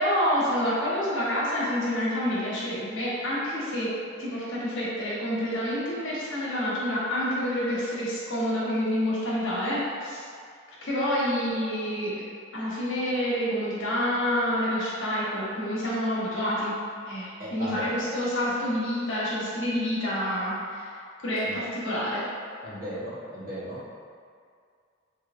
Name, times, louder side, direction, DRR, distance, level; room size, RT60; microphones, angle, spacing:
voice 1, 0.0-3.9 4.2-10.2 10.8-12.1 12.5-16.8 17.0-22.2, equal, 80° left, -8 dB, 1.2 m, -28 dB
voice 2, 17.4-17.9 21.4-21.5 22.6-23.8, equal, 50° right, -9 dB, 1.2 m, -36 dB
4.6 x 2.8 x 2.6 m, 2.2 s
head